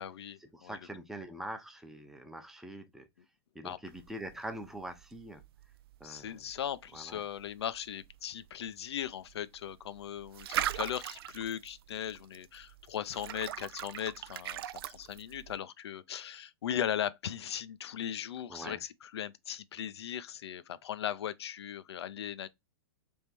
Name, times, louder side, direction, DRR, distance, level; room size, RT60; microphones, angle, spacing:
voice 1, 0.0-0.8 3.6-3.8 6.0-22.5, left 10 dB, 80° left, 0.5 m, -38 dB
voice 2, 0.5-3.1 3.5-5.4 6.0-6.4 6.9-7.2 18.5-18.8, right 1 dB, 5° right, 0.7 m, -44 dB
sound 1, 3.9-15.6, right 13 dB, 65° right, 0.4 m, -42 dB
3.6 x 3.2 x 4.3 m
hypercardioid pair, 130°, 14 cm